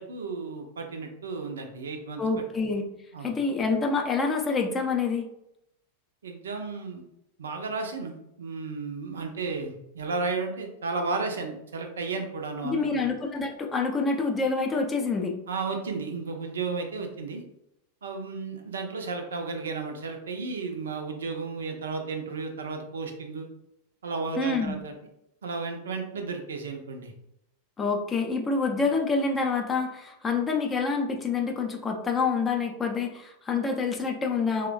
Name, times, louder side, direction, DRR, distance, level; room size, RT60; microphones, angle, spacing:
voice 1, 0.0-2.2 3.1-3.3 6.2-7.0 7.4-13.0 15.5-17.4 18.0-23.5 24.0-24.9 25.4-27.1, right 4 dB, 65° right, 4 dB, 0.4 m, -33 dB
voice 2, 2.2-2.9 3.2-5.3 12.6-15.3 24.4-24.8 27.8-34.7, left 4 dB, 20° left, 2 dB, 0.4 m, -27 dB
3.0 x 2.1 x 2.3 m, 0.81 s
figure-of-eight pair, 90°, 0 cm